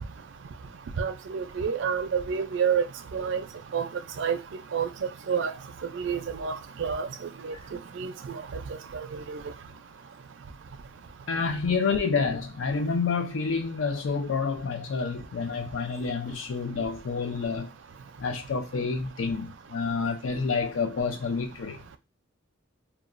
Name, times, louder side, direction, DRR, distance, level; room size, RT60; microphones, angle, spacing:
voice 1, 1.0-3.4 3.7-3.9 4.2-4.4 4.7-4.9 5.3-5.5 5.8-7.1 7.4-8.6 8.9-9.4, right 6 dB, 65° right, 0.4 m, -29 dB
voice 2, 11.3-17.7 18.2-21.8, left 5 dB, 75° left, 0.5 m, -28 dB
2.8 x 2.2 x 2.5 m
head